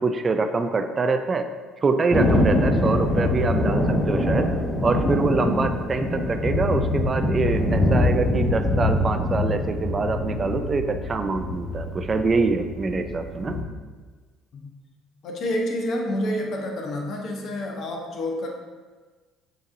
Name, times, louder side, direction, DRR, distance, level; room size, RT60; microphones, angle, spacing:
voice 1, 0.0-1.5 1.8-4.5 4.8-13.6, right 4 dB, 35° right, 7 dB, 0.4 m, -25 dB
Thunder, 2.1-13.6, left 1 dB, 20° left, 0.9 m, -24 dB
voice 2, 15.2-18.5, left 1 dB, 60° left, 1 dB, 0.8 m, -28 dB
6.9 x 2.9 x 2.5 m, 1.4 s
hypercardioid pair, 65°, 0 cm